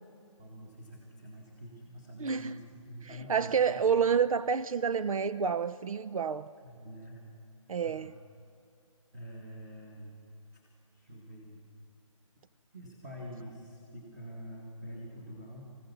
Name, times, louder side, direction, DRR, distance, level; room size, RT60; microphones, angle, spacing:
voice 1, 0.4-3.8 6.6-7.2 7.8-8.1 9.1-10.1 10.5-10.6 10.9-11.6 12.4-12.5 12.7-15.8, equal, 15° right, 1.9 m, -46 dB
voice 2, 2.2-2.6 3.3-6.5 7.7-8.1, right 6 dB, 80° right, 0.6 m, -28 dB
25.0 x 15.5 x 7.0 m
hypercardioid pair, 175°, 17 cm